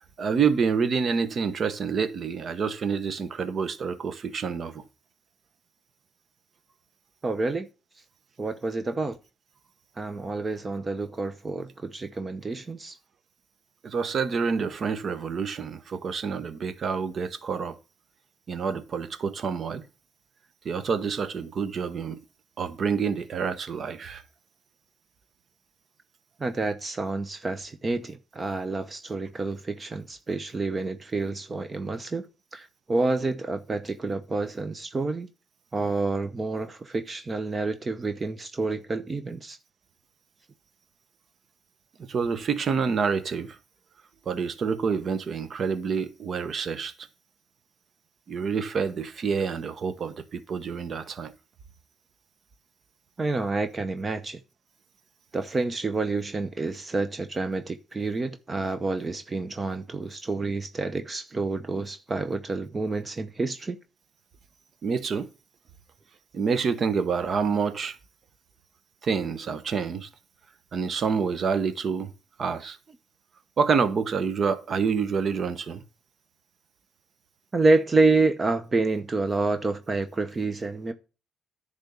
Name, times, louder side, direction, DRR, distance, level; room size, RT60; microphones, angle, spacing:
voice 1, 0.2-4.8 13.8-17.8 18.5-19.8 20.6-22.2 22.6-24.2 42.1-43.6 44.3-46.9 48.3-51.3 64.8-65.3 66.3-68.0 69.0-70.1 70.7-72.1 72.4-72.8 73.6-75.8, right 5 dB, 50° right, 1.0 m, -27 dB
voice 2, 7.2-7.7 8.4-9.2 10.0-13.0 26.4-32.3 32.5-35.3 35.7-39.6 53.2-54.4 55.3-63.8 77.5-80.9, right 3 dB, 30° right, 0.8 m, -28 dB
10.5 x 3.6 x 6.8 m
cardioid pair, 90°, 0 cm